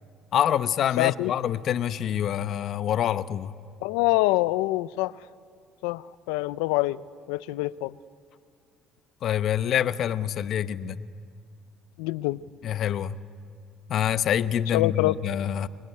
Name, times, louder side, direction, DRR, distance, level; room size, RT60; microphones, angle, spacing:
voice 1, 0.3-3.5 9.2-11.1 12.6-13.2 13.9-15.7, left 10 dB, 60° left, 13 dB, 0.9 m, -26 dB
voice 2, 1.0-1.3 3.8-5.2 5.8-7.0 7.3-8.0 12.0-12.4 14.7-15.2, left 19 dB, 90° left, 18 dB, 0.6 m, -25 dB
24.5 x 23.5 x 9.8 m, 2.2 s
supercardioid pair, 85°, 0 cm